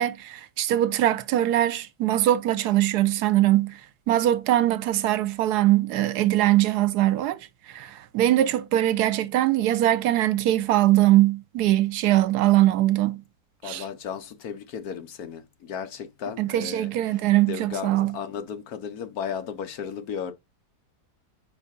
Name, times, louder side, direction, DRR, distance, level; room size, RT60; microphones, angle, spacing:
voice 1, 0.0-3.8 4.1-7.4 7.7-13.2 13.7-13.8 16.4-18.1, right 14 dB, 80° right, 1.2 m, -22 dB
voice 2, 13.6-20.3, left 7 dB, 70° left, 1.3 m, -35 dB
4.8 x 4.8 x 4.2 m
omnidirectional pair, 1.7 m